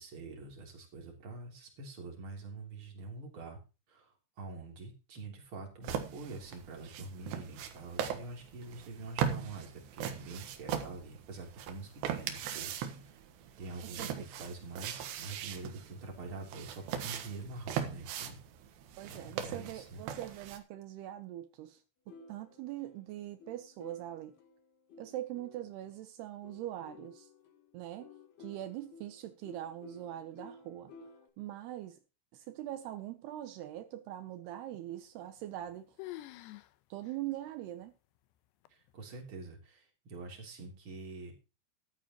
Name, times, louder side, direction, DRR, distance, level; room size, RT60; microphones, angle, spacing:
voice 1, 0.0-3.6 3.9-12.7 13.0-13.2 13.6-18.4 19.1-20.0 38.7-41.3, right 3 dB, 30° right, 3.3 m, -46 dB
sound 1, 5.8-20.6, right 8 dB, 65° right, 3.1 m, -40 dB
voice 2, 19.0-21.8 22.3-24.4 25.0-27.3 27.7-28.1 28.4-30.9 31.4-32.0 32.3-36.0 36.9-37.9, right 13 dB, 85° right, 2.3 m, -42 dB
sound 2, 22.1-25.9 26.4-31.3, left 3 dB, 60° left, 3.6 m, -55 dB
sound 3, 35.2-35.7 36.0-36.7 37.0-37.2 37.8-37.9 38.7-39.0, left 16 dB, 85° left, 2.5 m, -46 dB
13.5 x 12.0 x 3.0 m
omnidirectional pair, 6.0 m